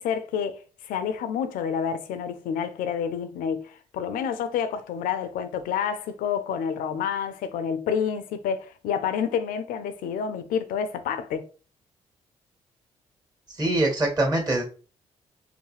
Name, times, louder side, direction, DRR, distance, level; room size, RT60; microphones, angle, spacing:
voice 1, 0.0-11.5, left 7 dB, 80° left, 0.5 m, -29 dB
voice 2, 13.5-14.6, right 2 dB, 30° right, 2.0 m, -23 dB
4.6 x 2.1 x 3.3 m
supercardioid pair, 55°, 14 cm